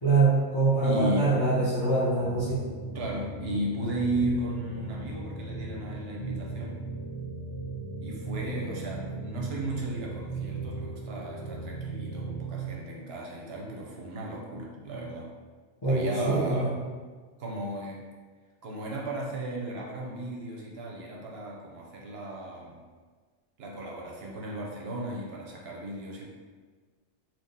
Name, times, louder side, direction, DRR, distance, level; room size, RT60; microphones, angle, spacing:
voice 1, 0.0-2.7 15.8-16.7, right 3 dB, 20° left, -13 dB, 0.9 m, -24 dB
voice 2, 0.8-1.3 2.9-6.8 8.0-15.3 15.9-16.7 17.4-18.0 18.6-22.8 23.6-26.3, right 1 dB, 60° right, -2 dB, 0.8 m, -35 dB
sound 1, 2.2-12.8, right 3 dB, 85° left, 1.0 m, -37 dB
3.6 x 2.9 x 2.7 m, 1.5 s
omnidirectional pair, 1.3 m